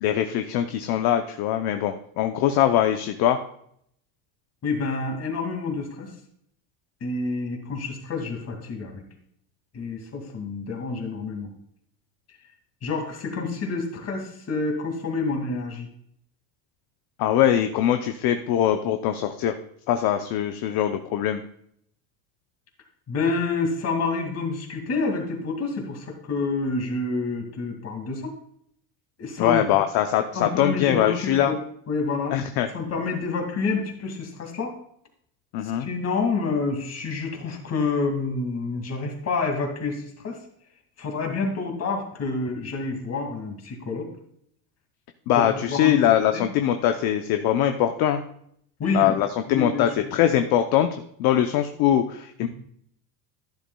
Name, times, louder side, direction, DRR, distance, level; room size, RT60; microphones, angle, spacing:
voice 1, 0.0-3.4 17.2-19.6 19.9-21.4 29.4-31.5 32.3-32.7 35.5-35.9 45.3-48.2 48.9-52.5, left 11 dB, 55° left, 7 dB, 0.7 m, -22 dB
voice 2, 4.6-6.1 7.0-9.0 9.7-11.5 12.8-15.9 23.1-28.3 29.2-29.6 30.3-31.6 31.9-32.4 32.7-34.7 35.6-40.4 41.0-44.1 45.3-46.0 46.3-46.5 48.8-49.2 49.5-50.1 52.4-52.5, left 3 dB, 35° left, 3 dB, 2.2 m, -28 dB
11.5 x 10.0 x 2.3 m, 0.69 s
supercardioid pair, 120°, 45 cm